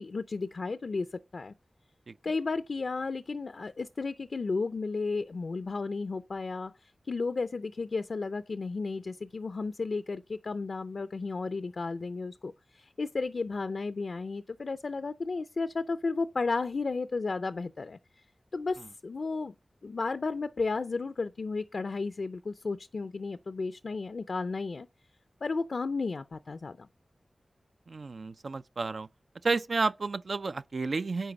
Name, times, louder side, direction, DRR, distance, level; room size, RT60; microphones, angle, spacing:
voice 1, 0.0-1.5 2.2-18.0 18.5-19.5 19.8-24.9 25.4-26.9, left 4 dB, 70° left, 0.4 m, -33 dB
voice 2, 27.9-29.1 29.4-31.3, right 3 dB, 70° right, 0.4 m, -31 dB
10.0 x 3.9 x 6.9 m
cardioid pair, 50°, 0 cm